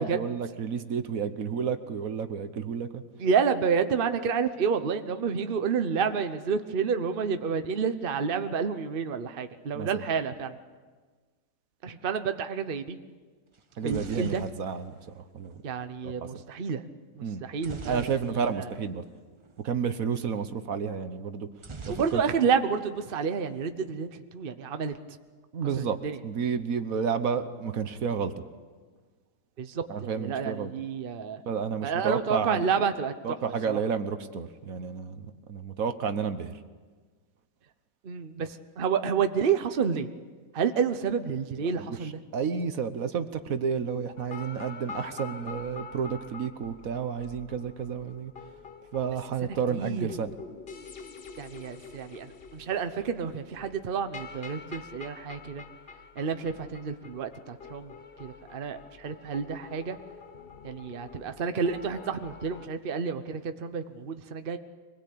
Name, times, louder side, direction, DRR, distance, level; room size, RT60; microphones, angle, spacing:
voice 1, 0.0-3.0 9.7-10.0 13.8-15.6 16.0-16.3 17.2-17.4 17.9-19.0 19.6-21.5 21.9-22.5 25.5-26.0 26.2-28.3 29.9-30.7 31.5-32.6 33.2-36.5 41.8-41.9 42.3-48.3 48.9-50.4, right 6 dB, 75° right, 10 dB, 1.5 m, -31 dB
voice 2, 3.2-10.6 11.8-13.0 13.8-14.4 15.6-16.8 17.2-18.7 21.9-25.0 25.7-26.2 29.6-31.4 31.8-33.1 33.7-33.8 38.0-40.1 40.5-42.2 49.4-50.1 51.4-55.6 56.2-57.9 58.2-60.0 60.6-64.6, right 6 dB, 45° right, 9 dB, 1.1 m, -29 dB
sound 1, 13.5-15.7 17.6-18.8 19.1-19.2 19.4-19.7 21.6-22.8 23.1-23.7, right 4 dB, 25° right, 0.7 m, -44 dB
sound 2, 44.2-62.7, left 5 dB, 45° left, 1.2 m, -46 dB
24.5 x 20.0 x 8.6 m, 1.4 s
omnidirectional pair, 1.5 m